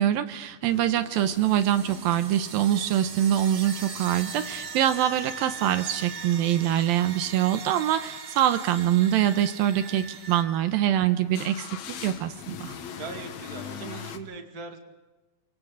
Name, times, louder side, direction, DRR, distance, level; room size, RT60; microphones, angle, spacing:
voice 1, 0.0-11.7 12.0-12.7, right 11 dB, 80° right, 10 dB, 2.6 m, -24 dB
sound 1, 0.6-14.2, left 7 dB, 60° left, 2.3 m, -45 dB
sound 2, 1.1-10.4, right 5 dB, 50° right, 2.6 m, -42 dB
sound 3, 3.6-6.4 8.5-11.1, right 3 dB, 35° left, 1.5 m, -44 dB
voice 2, 13.0-14.8, right 5 dB, 30° right, 4 dB, 2.0 m, -40 dB
29.5 x 26.0 x 4.0 m, 1.2 s
omnidirectional pair, 4.3 m